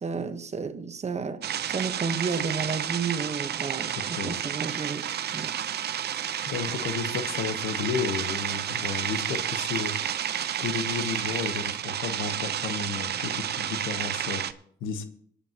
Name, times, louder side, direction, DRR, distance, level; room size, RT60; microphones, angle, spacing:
voice 1, 0.0-5.1 5.3-5.5, right 5 dB, 35° right, 1.1 m, -32 dB
sound 1, 1.4-14.5, right 9 dB, 55° right, 0.7 m, -31 dB
voice 2, 6.5-10.0 10.6-14.4 14.8-15.0, left 5 dB, 90° left, 1.1 m, -32 dB
25.5 x 8.5 x 2.9 m
cardioid pair, 90°, 20 cm